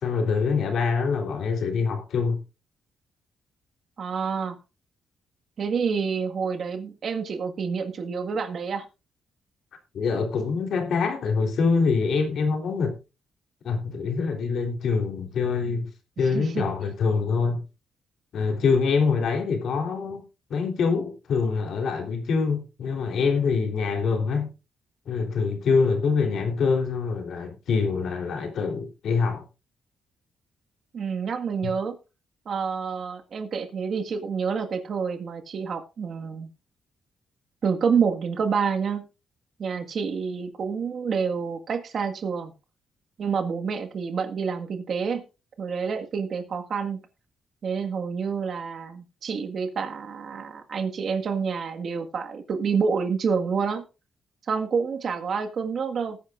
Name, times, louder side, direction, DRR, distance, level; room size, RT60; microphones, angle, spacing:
voice 1, 0.0-2.4 9.9-12.9 13.6-15.9 16.2-17.6 18.3-20.2 20.5-24.5 25.1-29.4, left 5 dB, 70° left, 3.6 m, -25 dB
voice 2, 4.0-4.5 5.6-8.8 16.2-16.6 30.9-32.0 32.4-36.5 37.6-39.0 39.6-42.5 43.2-45.2 45.6-47.0 47.6-53.8 54.5-56.2, right 6 dB, 55° right, 1.8 m, -28 dB
19.5 x 9.9 x 2.6 m
cardioid pair, 120°, 0 cm